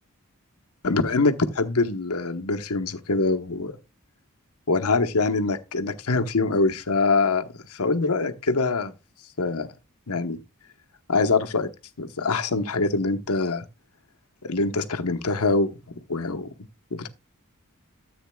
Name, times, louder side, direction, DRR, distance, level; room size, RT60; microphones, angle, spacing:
voice 1, 0.8-3.8 4.7-7.4 7.7-8.9 9.4-9.7 10.1-10.4 11.1-11.7 12.0-13.6 14.4-15.7 16.1-16.5 16.9-17.1, left 3 dB, 75° left, 1.0 m, -24 dB
13.5 x 8.1 x 2.3 m
head